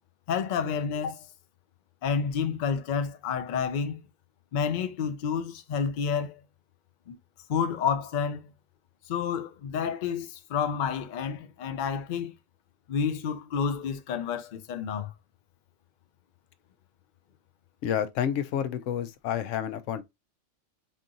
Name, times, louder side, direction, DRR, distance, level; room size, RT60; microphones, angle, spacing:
voice 1, 0.3-1.3 2.0-4.0 4.5-6.4 7.1-7.2 7.5-8.4 9.1-12.3 12.9-15.1, left 6 dB, 55° left, 0.5 m, -29 dB
voice 2, 17.8-20.0, left 9 dB, 90° left, 0.9 m, -29 dB
4.4 x 2.7 x 2.4 m
omnidirectional pair, 1.2 m